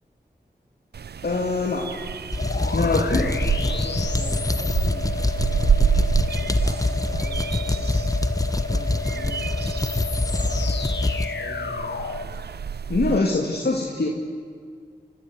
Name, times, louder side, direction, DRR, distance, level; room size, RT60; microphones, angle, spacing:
sound 1, 0.9-13.2, right 7 dB, 70° right, 0.5 m, -29 dB
voice 1, 1.2-2.1 2.7-3.3 12.9-14.1, left 3 dB, 65° left, -1 dB, 2.4 m, -23 dB
sound 2, 2.3-11.3, left 2 dB, 20° left, 1.1 m, -25 dB
sound 3, 2.4-12.3, left 4 dB, 80° left, 1.5 m, -33 dB
voice 2, 2.5-6.0 6.4-8.1 8.6-9.5 10.2-12.4, right 1 dB, 55° right, 2 dB, 3.9 m, -42 dB
29.0 x 13.5 x 8.3 m, 2.1 s
cardioid pair, 50°, 18 cm